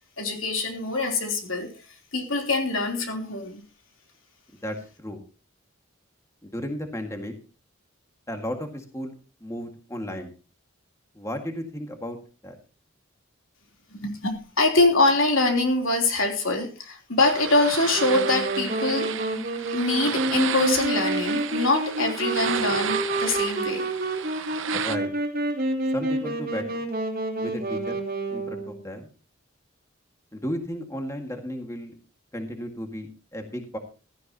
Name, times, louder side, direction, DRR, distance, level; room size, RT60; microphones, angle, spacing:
voice 1, 0.2-1.7 2.1-3.6 13.9-19.1 19.7-23.8, left 2 dB, 75° left, 3 dB, 3.3 m, -24 dB
voice 2, 4.6-5.2 6.4-7.3 8.3-9.1 9.4-10.3 11.2-12.2 12.4-12.6 24.7-25.1 25.9-26.7 27.4-27.9 28.3-29.1 30.3-31.9 32.3-33.8, equal, 15° left, 4 dB, 1.8 m, -34 dB
sound 1, 17.2-25.0, right 8 dB, 65° right, 0.8 m, -33 dB
Wind instrument woodwind instrument, 17.9-28.8, right 2 dB, 45° right, 2.8 m, -29 dB
16.0 x 14.0 x 2.9 m, 0.33 s
head